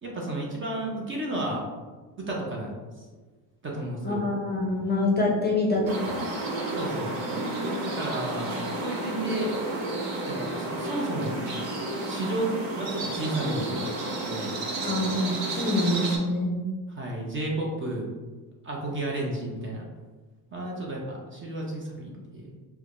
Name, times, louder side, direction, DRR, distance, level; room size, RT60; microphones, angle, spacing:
voice 1, 0.0-1.6 2.2-2.9 3.6-4.3 6.7-7.2 7.8-8.5 8.8-9.6 10.2-11.3 12.1-13.9 14.2-14.6 16.9-18.1 18.6-19.9 20.5-22.5, right 1 dB, 25° right, -2 dB, 0.6 m, -32 dB
voice 2, 4.0-6.3 14.8-16.5, left 2 dB, 20° left, -2 dB, 0.6 m, -26 dB
sound 1, 5.9-16.2, right 2 dB, 65° right, 0.9 m, -31 dB
4.4 x 2.2 x 2.5 m, 1.3 s
supercardioid pair, 95°, 49 cm